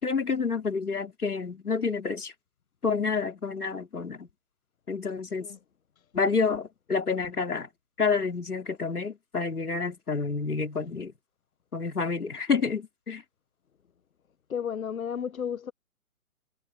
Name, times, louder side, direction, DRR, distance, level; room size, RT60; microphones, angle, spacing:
voice 1, 0.0-2.3 2.8-4.3 4.9-5.5 6.1-7.7 8.0-11.1 11.7-13.2, left 5 dB, 85° left, 4.0 m, -29 dB
voice 2, 14.5-15.7, left 8 dB, 65° left, 1.5 m, -32 dB
hypercardioid pair, 145°, 44 cm